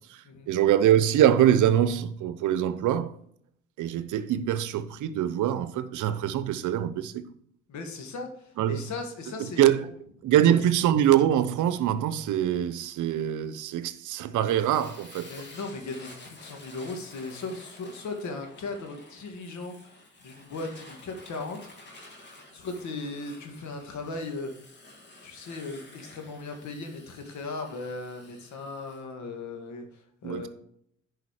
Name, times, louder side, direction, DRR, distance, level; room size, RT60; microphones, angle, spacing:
voice 1, 0.1-3.1 3.8-7.3 8.6-8.8 9.4-9.9 10.2-15.3 30.2-30.5, right 11 dB, 80° right, 0.8 m, -24 dB
voice 2, 7.7-9.6 10.5-10.6 15.3-19.8 20.2-21.7 22.5-24.8 25.2-30.5, left 3 dB, 70° left, 2.0 m, -37 dB
Fire, 14.4-29.0, left 2 dB, 35° left, 2.2 m, -51 dB
10.5 x 4.8 x 4.9 m
cardioid pair, 90°, 30 cm